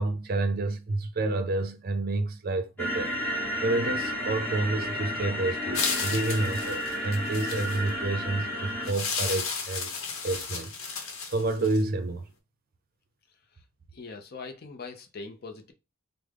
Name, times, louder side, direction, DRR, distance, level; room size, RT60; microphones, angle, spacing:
voice 1, 0.0-9.9 10.2-12.2, right 2 dB, 45° right, 0.5 m, -29 dB
sound 1, 2.8-8.9, equal, 10° left, 0.9 m, -32 dB
sound 2, 5.7-7.9 8.8-11.8, left 5 dB, 70° left, 0.8 m, -33 dB
voice 2, 13.9-15.7, left 4 dB, 45° left, 0.5 m, -41 dB
3.5 x 2.0 x 3.3 m
head